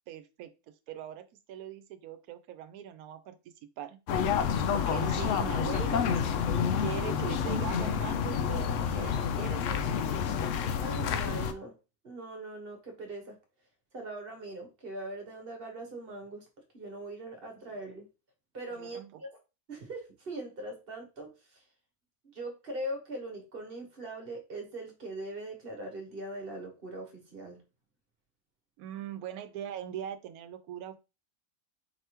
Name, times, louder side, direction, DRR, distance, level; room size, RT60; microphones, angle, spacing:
voice 1, 0.1-0.5 0.9-3.4 3.8-4.0 4.3-4.4 4.7-6.5 6.8-10.2 18.8-19.2 28.8-31.0, right 10 dB, 85° right, 9 dB, 1.1 m, -41 dB
sound 1, 4.1-11.5, left 7 dB, 70° left, 0.9 m, -29 dB
voice 2, 10.8-11.7 12.0-13.4 13.9-16.5 16.7-18.1 18.5-19.3 19.7-21.6 22.2-27.6, right 1 dB, 45° right, 3 dB, 1.3 m, -41 dB
4.9 x 3.3 x 2.9 m, 0.28 s
omnidirectional pair, 1.5 m